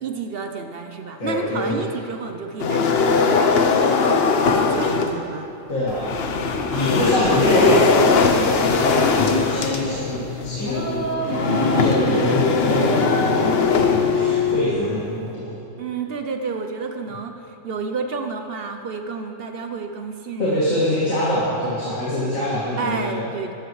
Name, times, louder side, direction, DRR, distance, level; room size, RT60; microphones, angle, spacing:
voice 1, 0.0-4.0 4.4-5.5 6.7-7.1 12.1-12.2 15.8-20.6 22.8-23.5, right 5 dB, 55° right, 6 dB, 0.7 m, -31 dB
voice 2, 1.2-1.9 5.7-6.1 6.7-15.5 20.4-23.2, left 1 dB, 85° left, -9 dB, 2.5 m, -24 dB
sound 1, 2.6-5.2 5.9-14.7, left 4 dB, 55° left, 0.9 m, -21 dB
sound 2, 8.8-10.2 10.6-12.3 12.7-14.7, left 4 dB, 10° left, 1.5 m, -25 dB
13.0 x 13.0 x 3.2 m, 2.7 s
omnidirectional pair, 1.4 m